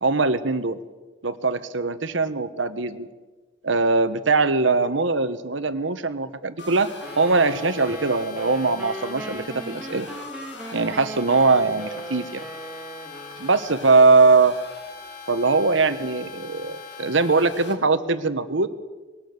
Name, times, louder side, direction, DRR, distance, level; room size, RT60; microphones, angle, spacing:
voice 1, 0.0-0.8 1.2-3.1 3.6-6.9 7.2-10.1 10.7-12.4 13.4-14.6 15.3-18.7, right 3 dB, 75° right, 12 dB, 1.2 m, -21 dB
sound 1, 6.6-17.7, left 4 dB, 60° left, 2.6 m, -41 dB
sound 2, 7.0-14.2, right 2 dB, 5° right, 2.5 m, -38 dB
20.5 x 18.5 x 6.7 m, 1.2 s
head